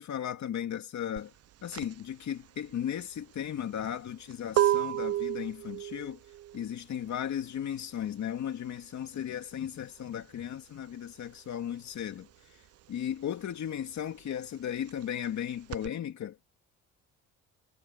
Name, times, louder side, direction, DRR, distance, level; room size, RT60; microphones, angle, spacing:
voice 1, 0.0-1.3 1.6-6.2 6.5-12.6 12.9-16.4, left 9 dB, 65° left, 2.8 m, -36 dB
sound 1, 1.2-11.4 11.7-15.9, right 12 dB, 55° right, 0.5 m, -33 dB
cardioid pair, 90°, 30 cm